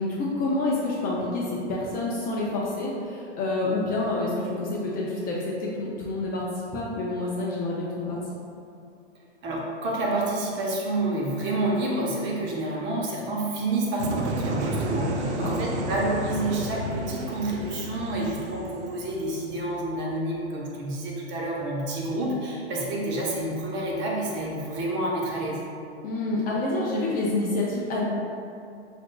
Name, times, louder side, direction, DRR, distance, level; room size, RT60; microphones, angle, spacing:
voice 1, 0.0-8.2 15.2-15.5 26.0-28.0, left 2 dB, 25° left, -4 dB, 0.5 m, -28 dB
voice 2, 9.4-25.6, right 1 dB, 35° right, -4 dB, 0.8 m, -29 dB
sound 1, 14.0-19.9, right 2 dB, 80° right, 0.5 m, -31 dB
5.7 x 2.5 x 2.3 m, 2.6 s
hypercardioid pair, 115°, 34 cm